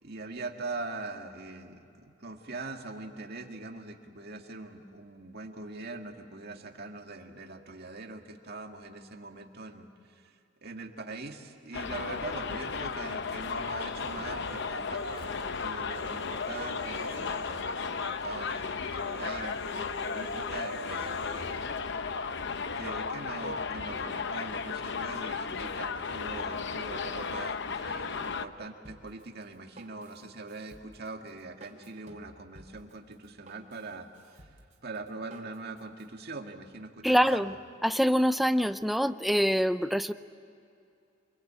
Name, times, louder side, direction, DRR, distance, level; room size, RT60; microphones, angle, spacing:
voice 1, 0.0-21.6 22.1-22.2 22.7-34.1 34.3-34.5 34.8-37.5, right 3 dB, 50° right, 3 dB, 2.1 m, -42 dB
Subway metro underground, 11.7-28.4, left 5 dB, 55° left, 0.8 m, -35 dB
Human voice, 13.4-14.6 14.9-18.2 18.4-18.6 19.0-21.4, left 1 dB, 80° left, 4.6 m, -45 dB
Drum kit, 28.8-36.1, right 2 dB, 35° right, 3.4 m, -55 dB
voice 2, 37.0-37.5 37.8-40.1, equal, ahead, 11 dB, 0.5 m, -25 dB
27.5 x 22.0 x 8.8 m, 2.6 s
head